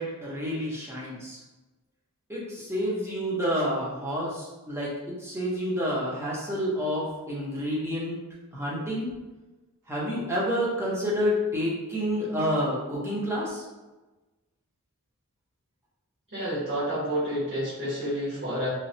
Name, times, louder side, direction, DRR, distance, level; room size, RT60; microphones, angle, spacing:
voice 1, 0.0-1.4 2.3-8.2 8.5-9.1 9.9-13.6, equal, 10° right, -6 dB, 0.7 m, -29 dB
voice 2, 16.3-18.7, equal, 55° right, -10 dB, 1.4 m, -29 dB
3.0 x 2.2 x 2.7 m, 1.1 s
head